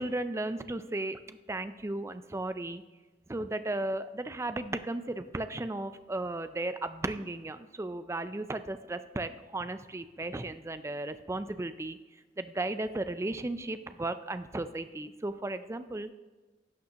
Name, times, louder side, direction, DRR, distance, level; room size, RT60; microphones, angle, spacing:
voice 1, 0.0-2.8 3.3-12.0 12.4-16.1, right 2 dB, 15° right, 11 dB, 0.4 m, -35 dB
11.5 x 6.5 x 2.9 m, 1.3 s
head